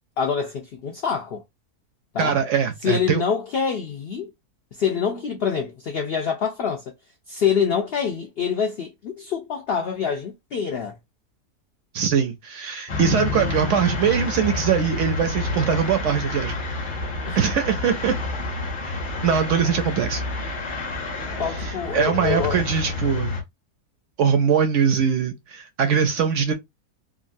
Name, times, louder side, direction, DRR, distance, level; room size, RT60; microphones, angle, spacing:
voice 1, 0.2-1.4 2.1-2.4 2.8-4.3 4.8-6.9 7.3-11.0 17.3-17.4 21.4-22.6, left 6 dB, 90° left, 0.5 m, -25 dB
voice 2, 2.2-3.2 11.9-16.9 17.3-18.1 18.8-20.2 21.5-23.4 24.2-26.5, right 7 dB, 70° right, 0.7 m, -22 dB
sound 1, 12.9-23.4, left 3 dB, 45° left, 0.7 m, -29 dB
2.9 x 2.3 x 2.4 m
omnidirectional pair, 1.6 m